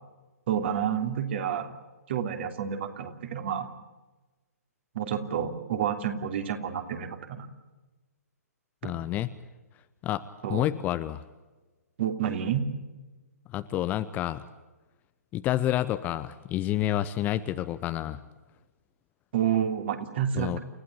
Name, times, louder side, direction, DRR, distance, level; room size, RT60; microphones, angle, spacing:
voice 1, 0.5-1.7 2.1-3.7 4.9-7.5 8.8-8.9 10.4-10.7 12.0-12.6 19.3-20.6, right 9 dB, 40° right, 6 dB, 3.1 m, -29 dB
voice 2, 8.8-9.3 10.0-10.2 10.5-11.2 13.5-14.4 15.3-18.2 20.3-20.6, left 13 dB, 20° left, 12 dB, 0.8 m, -29 dB
29.5 x 15.5 x 8.8 m, 1.2 s
figure-of-eight pair, 125°, 9 cm